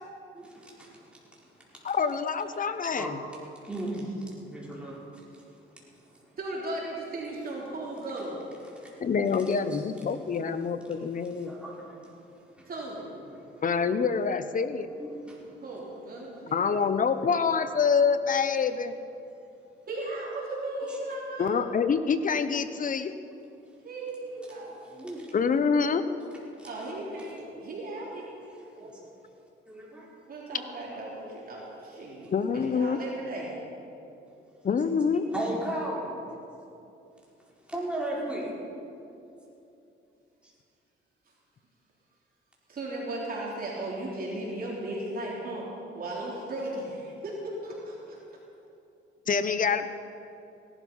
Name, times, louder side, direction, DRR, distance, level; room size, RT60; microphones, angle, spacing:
voice 1, 0.3-1.7 3.0-3.2 3.6-5.6 6.1-6.2 8.7-9.0 9.7-9.8 11.4-12.1 12.6-12.7 15.0-15.5 20.9-21.0 22.7-22.8 24.8-25.3 26.6-26.7 28.8-28.9 29.7-30.1 35.3-36.2 37.7-38.5 40.4-40.5, right 1 dB, 5° right, -5 dB, 4.5 m, -36 dB
voice 2, 1.8-3.2 9.0-11.5 13.6-14.9 16.5-18.9 21.4-23.1 25.3-26.0 32.3-33.0 34.6-35.2 49.3-50.0, left 5 dB, 40° left, 11 dB, 0.9 m, -26 dB
voice 3, 6.4-8.4 12.7-13.1 15.6-16.8 19.9-21.5 23.8-24.7 26.5-28.9 30.3-33.6 42.7-45.7 45.9-48.4, right 2 dB, 45° right, -4 dB, 3.6 m, -36 dB
17.5 x 12.5 x 5.5 m, 2.7 s
cardioid pair, 90°, 20 cm